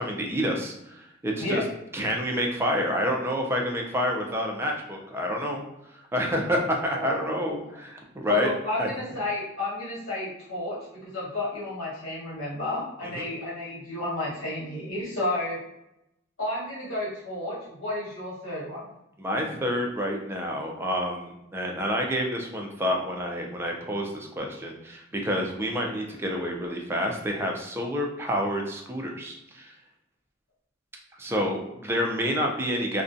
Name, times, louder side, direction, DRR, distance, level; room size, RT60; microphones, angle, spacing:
voice 1, 0.0-1.6 1.9-5.6 6.1-8.5 8.8-8.9 13.0-13.3 19.2-29.7 31.2-33.0, equal, 10° right, 1 dB, 0.3 m, -28 dB
voice 2, 6.5-7.7 8.2-15.6 16.4-18.9, left 2 dB, 85° left, -7 dB, 1.2 m, -32 dB
2.5 x 2.1 x 2.5 m, 0.87 s
head